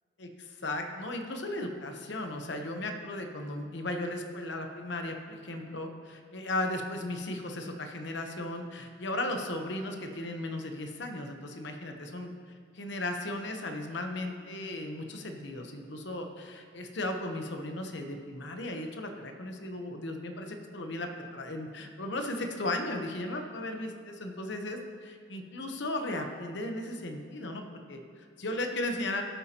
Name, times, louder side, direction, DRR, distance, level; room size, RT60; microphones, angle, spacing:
voice 1, 0.6-12.3 12.7-29.2, left 1 dB, 65° left, 4 dB, 0.9 m, -36 dB
18.0 x 8.2 x 2.9 m, 2.2 s
head